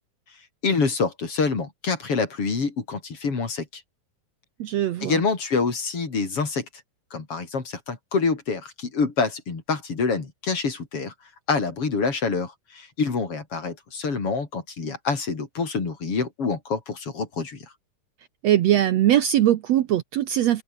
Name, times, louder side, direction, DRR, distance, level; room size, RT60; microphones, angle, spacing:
voice 1, 0.6-3.8 5.0-6.7 7.1-11.1 11.5-17.6, left 4 dB, 45° left, 4.5 m, -26 dB
voice 2, 4.6-5.2 18.4-20.6, right 12 dB, 65° right, 1.9 m, -21 dB
open air
omnidirectional pair, 3.7 m